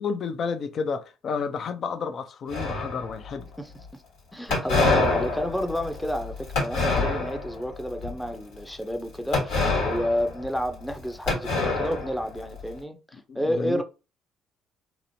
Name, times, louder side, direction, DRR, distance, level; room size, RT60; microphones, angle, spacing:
voice 1, 0.0-3.5 13.3-13.8, left 5 dB, 55° left, 0.4 m, -31 dB
sound 1, 2.5-3.3 4.5-7.6 8.0-8.3 9.3-11.0 11.3-12.6, left 3 dB, 80° left, 1.3 m, -26 dB
voice 2, 3.6-4.0 4.3-13.8, equal, 5° left, 0.5 m, -30 dB
2.9 x 2.0 x 2.7 m
supercardioid pair, 65°, 0 cm